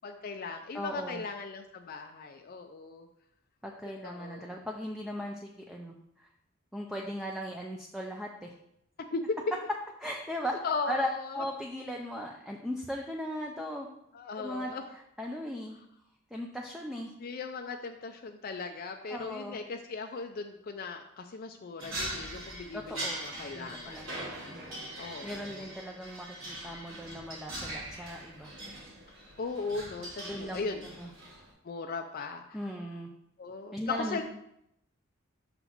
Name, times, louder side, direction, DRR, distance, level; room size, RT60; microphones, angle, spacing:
voice 1, 0.0-3.1 4.0-4.6 9.1-9.2 10.6-11.4 14.1-14.8 17.2-24.1 25.0-25.7 29.4-30.8 31.6-32.6 33.4-34.2, left 4 dB, 45° left, 5 dB, 0.4 m, -38 dB
voice 2, 0.7-1.2 3.6-5.9 6.7-8.5 10.0-10.5 10.9-11.1 11.3-13.9 14.3-14.7 15.2-15.8 16.3-17.1 19.1-19.6 22.7-24.9 25.2-28.5 30.2-31.1 32.5-33.1 33.7-34.2, equal, ahead, 0 dB, 0.5 m, -38 dB
sound 1, 21.8-31.5, right 1 dB, 85° right, 3.0 m, -41 dB
5.9 x 4.0 x 5.9 m, 0.78 s
head